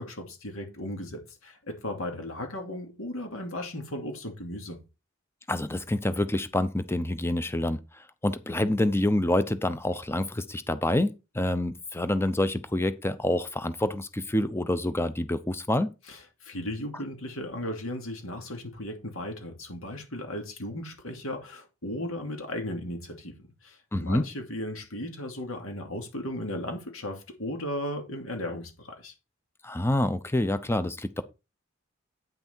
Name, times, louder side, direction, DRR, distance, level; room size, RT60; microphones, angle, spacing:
voice 1, 0.0-4.8 16.1-23.3 23.6-29.1, left 1 dB, 70° left, 2.6 m, -36 dB
voice 2, 5.5-7.8 8.2-15.9 23.9-24.2 29.6-31.2, left 1 dB, 10° left, 0.7 m, -27 dB
9.1 x 6.1 x 4.5 m
head